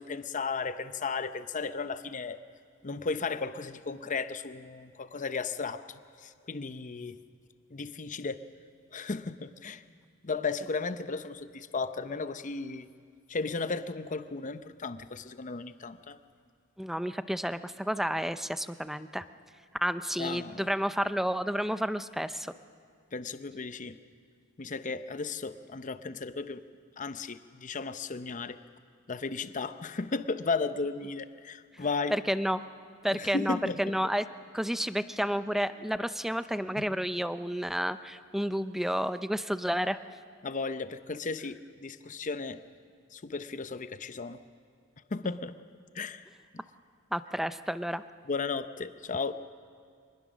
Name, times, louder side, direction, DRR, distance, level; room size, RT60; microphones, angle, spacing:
voice 1, 0.0-2.4 2.8-5.8 6.2-7.2 7.7-8.4 8.9-9.8 10.2-12.9 13.3-16.2 20.2-20.7 23.1-24.0 24.6-26.6 27.0-28.6 29.1-32.2 33.1-34.0 36.8-36.9 40.4-42.6 43.1-44.4 45.1-45.5 45.9-46.2 48.3-49.3, left 4 dB, 40° left, 12 dB, 0.7 m, -35 dB
voice 2, 16.8-19.2 19.8-22.5 32.1-32.6 33.0-34.3 34.5-40.0 47.1-48.0, equal, ahead, 12 dB, 0.5 m, -31 dB
24.5 x 20.5 x 6.3 m, 2.2 s
head